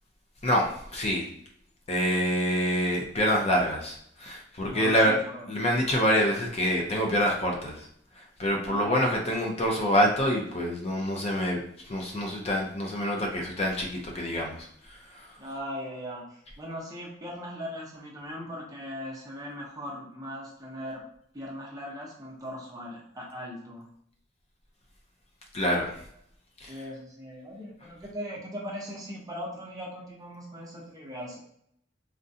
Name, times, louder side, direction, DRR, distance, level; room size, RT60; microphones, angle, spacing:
voice 1, 0.4-1.2 1.9-5.2 5.5-7.8 8.4-11.6 11.9-14.7 15.1-15.2 25.5-25.9 26.6-26.8, equal, 35° left, -1 dB, 0.5 m, -26 dB
voice 2, 4.6-5.5 8.6-9.1 15.4-21.0 21.3-23.9 26.7-31.4, equal, 20° right, -3 dB, 0.8 m, -39 dB
3.6 x 2.2 x 2.6 m, 0.69 s
head